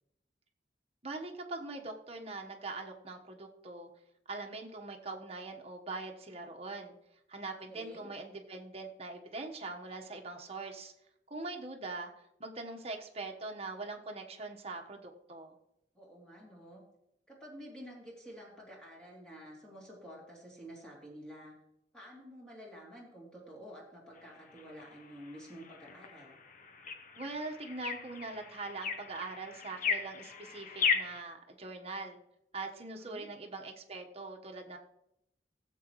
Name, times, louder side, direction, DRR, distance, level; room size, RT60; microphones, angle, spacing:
voice 1, 1.0-3.9 4.3-6.9 7.3-10.9 11.3-12.1 12.4-15.5 27.1-32.2 32.5-34.8, right 3 dB, 35° right, 2 dB, 1.3 m, -42 dB
voice 2, 7.7-8.1 15.9-16.8 17.3-21.5 21.9-26.3 33.0-33.3, equal, 5° left, -4 dB, 3.0 m, -50 dB
sound 1, 24.2-31.2, left 5 dB, 50° left, 0.9 m, -37 dB
16.5 x 7.7 x 3.2 m, 0.81 s
head